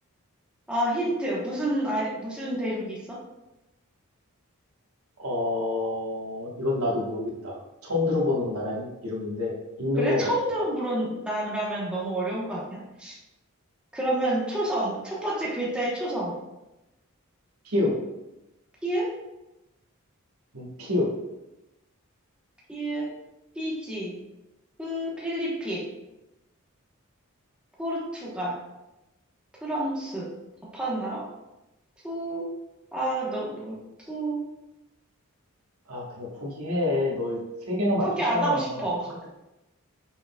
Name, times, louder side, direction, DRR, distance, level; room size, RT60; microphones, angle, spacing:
voice 1, 0.7-3.2 10.0-13.1 13.9-16.3 18.8-19.1 22.7-23.1 23.5-24.1 24.8-25.8 27.8-28.5 29.6-30.3 30.7-31.2 32.0-32.5 32.9-33.8 34.1-34.4 38.0-39.3, right 1 dB, 5° right, -6 dB, 1.0 m, -29 dB
voice 2, 5.2-10.3 17.6-18.0 20.5-21.1 35.9-37.4 37.7-38.8, left 2 dB, 80° right, -3 dB, 1.2 m, -27 dB
5.8 x 3.9 x 2.2 m, 0.97 s
head